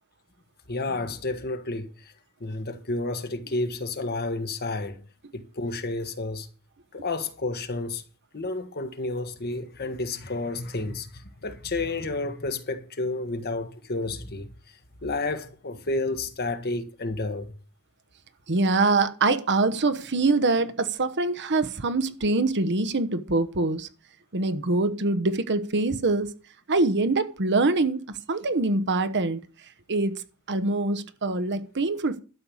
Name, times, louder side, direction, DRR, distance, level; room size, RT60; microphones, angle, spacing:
voice 1, 0.7-1.9 2.4-5.0 5.3-6.5 6.9-8.0 8.3-11.1 11.4-14.5 15.0-17.5, left 2 dB, 45° left, 1.5 m, -30 dB
voice 2, 18.5-23.9 24.3-26.3 26.7-29.4 29.9-30.2 30.5-32.2, right 3 dB, 55° right, 1.1 m, -24 dB
12.5 x 6.6 x 7.2 m
head